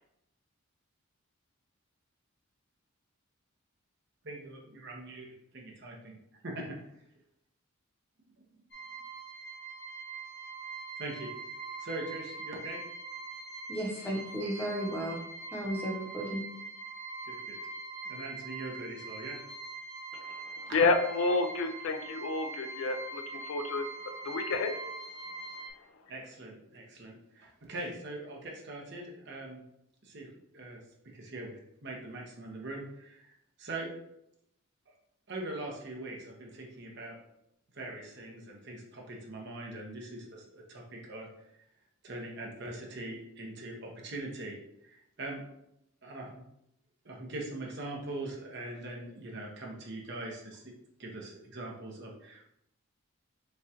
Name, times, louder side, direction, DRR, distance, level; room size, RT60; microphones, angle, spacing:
voice 1, 4.4-6.2 6.4-6.8 11.0-11.3 11.8-12.8 14.4-14.7 17.2-17.6 18.0-19.4 25.7-25.8 26.1-29.6 30.0-30.3 30.5-33.9 35.3-37.2 37.7-41.5 42.0-44.6 44.8-45.4 46.0-46.4 47.0-50.7 51.0-52.5, right 2 dB, 55° right, -1 dB, 1.0 m, -42 dB
sound 1, 8.7-25.7, right 3 dB, 50° left, 0.9 m, -43 dB
voice 2, 13.7-15.2 15.5-16.4, equal, 10° left, -2 dB, 0.8 m, -34 dB
voice 3, 20.1-23.9 24.2-24.7, left 3 dB, 70° left, 7 dB, 0.4 m, -30 dB
6.6 x 2.4 x 2.9 m, 0.79 s
head